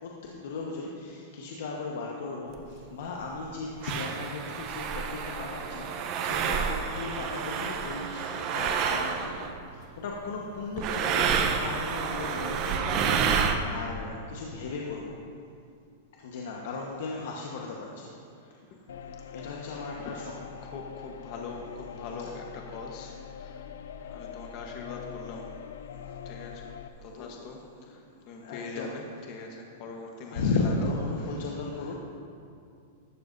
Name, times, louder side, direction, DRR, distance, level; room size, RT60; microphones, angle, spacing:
voice 1, 0.0-15.2 16.2-18.1 18.4-18.5 19.3-20.3 22.2-22.3 23.0-23.1 26.0-26.2 27.0-27.5 27.8-28.0 28.3-28.9 30.2-32.0, left 3 dB, 70° left, -2 dB, 1.3 m, -36 dB
sound 1, 2.5-2.6 3.4-3.5 3.8-9.6 10.8-13.6, right 6 dB, 35° right, 0.8 m, -29 dB
sound 2, 18.9-26.9, left 8 dB, 90° left, 0.6 m, -43 dB
voice 2, 20.6-23.7 24.0-25.5 26.2-26.7 27.0-30.9 31.2-31.4 31.8-32.0, left 4 dB, 40° left, 1 dB, 1.2 m, -42 dB
15.0 x 12.5 x 2.7 m, 2.4 s
supercardioid pair, 155°, 0 cm